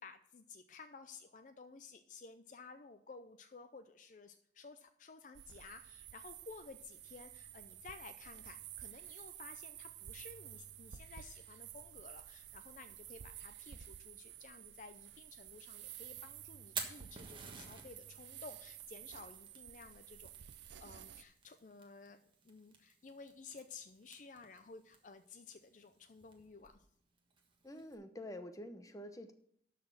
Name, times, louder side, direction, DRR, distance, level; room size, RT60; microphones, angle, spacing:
voice 1, 0.0-20.3 20.6-26.9, left 4 dB, 45° left, 9 dB, 0.5 m, -54 dB
sound 1, 5.3-21.2, right 11 dB, 80° right, 0.5 m, -52 dB
Fire, 16.5-27.9, right 5 dB, 30° right, 1.3 m, -52 dB
voice 2, 27.6-29.3, left 1 dB, 20° left, 8 dB, 0.8 m, -47 dB
12.5 x 4.2 x 7.1 m, 0.65 s
head